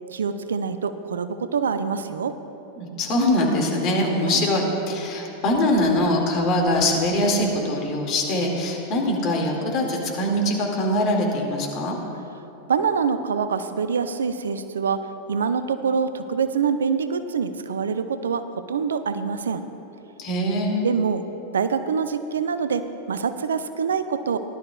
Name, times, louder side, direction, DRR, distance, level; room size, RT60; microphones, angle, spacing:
voice 1, 0.1-2.4 4.3-4.4 12.7-15.0 15.3-19.6 20.8-21.2 21.5-24.4, right 6 dB, 65° right, 10 dB, 0.5 m, -25 dB
voice 2, 2.8-12.0 20.2-20.9, left 1 dB, 40° left, 0 dB, 2.1 m, -23 dB
18.0 x 11.5 x 2.4 m, 3.0 s
figure-of-eight pair, 90°, 0 cm